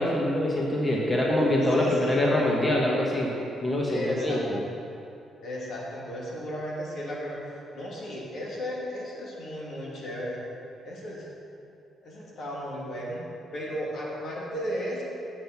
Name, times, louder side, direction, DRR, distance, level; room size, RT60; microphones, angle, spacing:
voice 1, 0.0-3.3 3.6-4.6, left 1 dB, 20° left, -3 dB, 1.6 m, -24 dB
voice 2, 1.7-2.2 3.9-4.6 5.4-7.4 7.7-10.4 10.8-11.3 12.0-13.2 13.5-15.0, equal, 65° left, -5 dB, 2.5 m, -35 dB
7.8 x 6.4 x 7.3 m, 2.6 s
cardioid pair, 90°, 0 cm